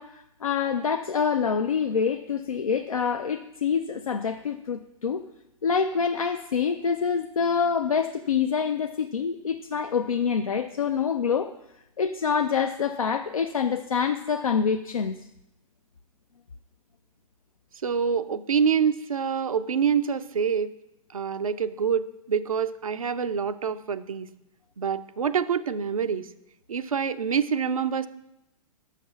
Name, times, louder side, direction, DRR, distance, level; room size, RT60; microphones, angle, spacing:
voice 1, 0.0-5.2 5.6-11.5 12.0-15.2, left 6 dB, 80° left, 7 dB, 0.5 m, -26 dB
voice 2, 17.8-20.7 21.1-24.3 24.8-26.3 26.7-28.1, right 7 dB, 80° right, 11 dB, 0.5 m, -26 dB
6.2 x 5.8 x 7.1 m, 0.86 s
figure-of-eight pair, 105°, 18 cm